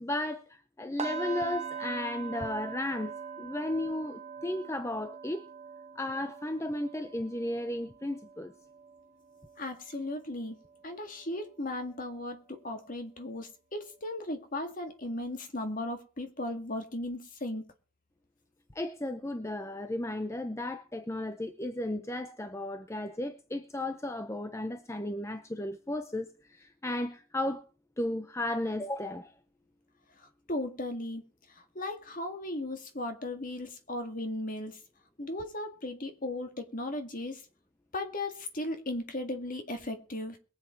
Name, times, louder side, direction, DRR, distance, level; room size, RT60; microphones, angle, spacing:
voice 1, 0.0-5.4 6.0-8.5 18.7-27.6 28.0-29.3, left 1 dB, 15° left, 0.6 m, -34 dB
sound 1, 1.0-10.9 11.2-11.5 12.0-12.1, right 6 dB, 30° right, 1.2 m, -43 dB
voice 2, 9.6-10.6 10.8-17.6 30.2-31.2 31.5-34.8 35.2-37.4 37.9-40.4, left 1 dB, 40° left, 2.0 m, -36 dB
22.0 x 8.0 x 4.5 m
head